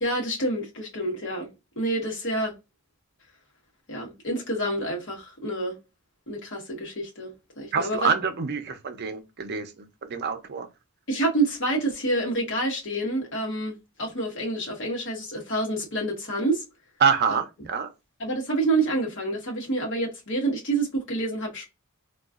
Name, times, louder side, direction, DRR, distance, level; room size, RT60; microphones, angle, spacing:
voice 1, 0.0-2.5 3.9-5.8 6.3-8.1 11.1-16.6 17.3-17.4 18.2-21.7, right 2 dB, 55° left, 1.1 m, -28 dB
voice 2, 7.7-10.7 17.0-17.9, right 6 dB, 50° right, 0.5 m, -26 dB
3.7 x 2.3 x 2.3 m
head